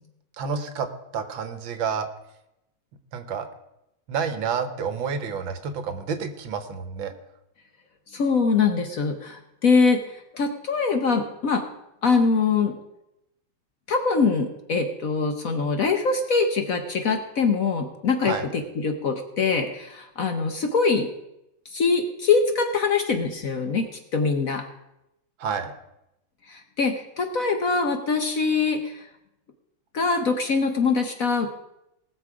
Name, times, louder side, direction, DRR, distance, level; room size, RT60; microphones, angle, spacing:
voice 1, 0.4-2.1 3.1-3.5 4.1-7.1 18.2-18.5 25.4-25.7, right 6 dB, 75° right, 9 dB, 1.8 m, -29 dB
voice 2, 8.1-11.6 12.0-12.8 13.9-21.1 21.6-24.6 26.5-29.1 29.9-31.5, left 4 dB, 55° left, 6 dB, 1.1 m, -23 dB
19.5 x 6.8 x 4.9 m, 0.87 s
omnidirectional pair, 2.2 m